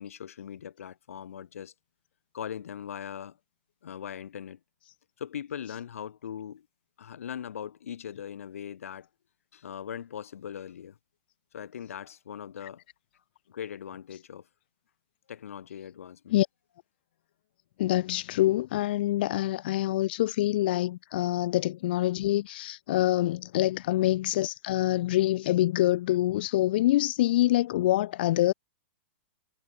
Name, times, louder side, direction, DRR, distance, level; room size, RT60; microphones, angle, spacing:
voice 1, 0.0-1.7 2.3-3.4 3.8-4.6 5.2-6.7 7.0-9.1 9.5-11.0 11.5-12.8 13.5-14.5 15.3-16.4, left 9 dB, 85° left, 3.1 m, -40 dB
voice 2, 17.8-28.5, left 15 dB, 45° left, 0.7 m, -25 dB
hypercardioid pair, 170°, 7 cm